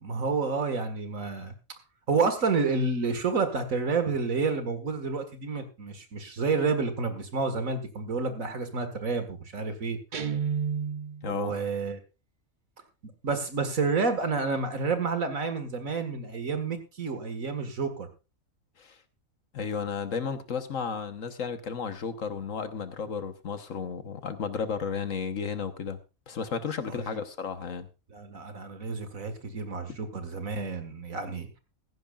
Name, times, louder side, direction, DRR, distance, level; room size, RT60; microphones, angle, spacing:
voice 1, 0.0-1.5 2.1-10.0 11.2-12.0 13.2-18.1 26.9-27.2 28.1-31.5, right 4 dB, 70° right, 8 dB, 2.2 m, -29 dB
Guitar, 10.1-11.3, right 7 dB, 40° right, 0.9 m, -30 dB
voice 2, 11.2-11.6 18.8-19.0 19.5-26.0 26.3-27.9, left 6 dB, 65° left, 9 dB, 1.5 m, -33 dB
16.0 x 15.0 x 2.4 m, 0.29 s
omnidirectional pair, 1.5 m